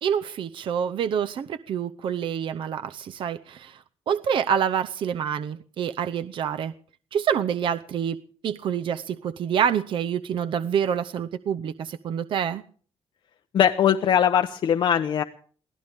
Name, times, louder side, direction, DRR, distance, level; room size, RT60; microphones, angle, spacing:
voice 1, 0.0-6.7 7.1-8.2 8.4-12.6, right 8 dB, 55° right, 0.7 m, -27 dB
voice 2, 13.5-15.2, left 9 dB, 55° left, 1.0 m, -20 dB
22.5 x 16.0 x 3.5 m
wide cardioid pair, 180°, 10 cm